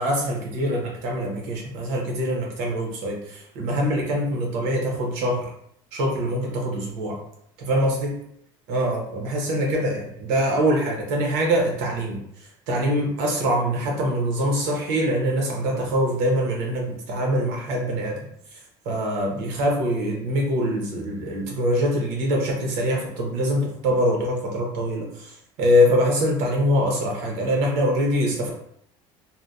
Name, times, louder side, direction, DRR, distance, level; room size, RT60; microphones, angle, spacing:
voice 1, 0.0-5.5 5.9-7.2 7.6-8.2 8.7-12.2 12.7-18.2 18.5-18.6 18.8-28.5, equal, 85° right, 0 dB, 0.8 m, -24 dB
2.7 x 2.1 x 2.3 m, 0.70 s
cardioid pair, 175°, 11 cm